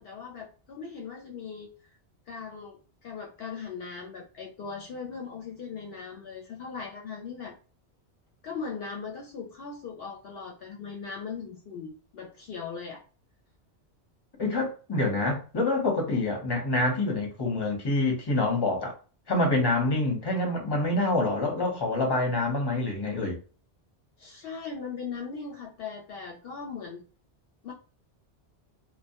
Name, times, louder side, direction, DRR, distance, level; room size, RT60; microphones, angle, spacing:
voice 1, 0.0-1.7 2.3-7.5 8.4-13.0 24.2-27.0 27.6-27.7, left 5 dB, 65° left, 0.7 m, -39 dB
voice 2, 14.4-18.9 19.3-23.4, left 2 dB, 25° left, 0.7 m, -26 dB
2.1 x 2.1 x 2.8 m
omnidirectional pair, 1.1 m